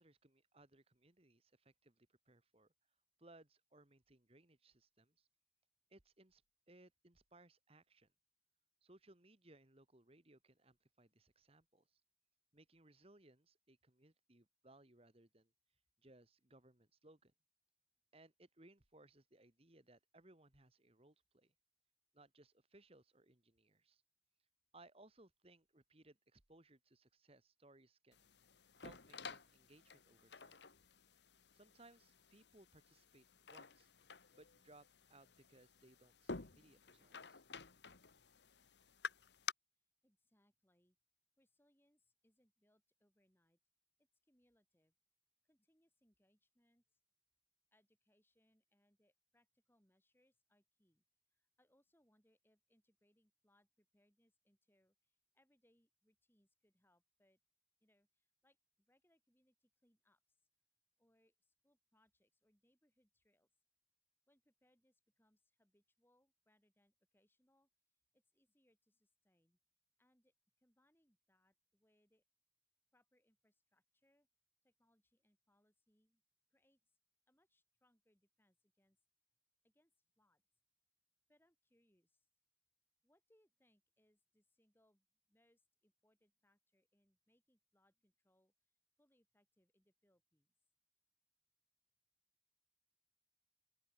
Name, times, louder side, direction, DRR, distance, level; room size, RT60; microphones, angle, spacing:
voice 1, 0.0-2.7 3.2-5.3 5.9-6.4 6.7-8.1 8.8-12.0 12.5-15.5 16.0-17.3 18.1-21.5 22.1-24.0 24.7-28.3 28.8-30.6 31.5-33.9 34.3-34.8 35.1-37.4, right 2 dB, 30° right, 1.9 m, -66 dB
sound 1, 28.1-39.5, left 5 dB, 65° left, 1.4 m, -52 dB
voice 2, 40.0-41.0 41.4-43.6 44.0-44.9 45.4-47.0 47.7-51.0 51.3-57.4 57.8-60.4 61.0-63.5 64.3-67.7 68.1-69.6 70.0-72.2 72.9-74.3 74.6-76.2 76.5-77.0 77.3-79.0 79.6-80.4 81.3-82.3 83.0-88.5 89.0-90.5, left 1 dB, 10° left, 6.4 m, -79 dB
open air
head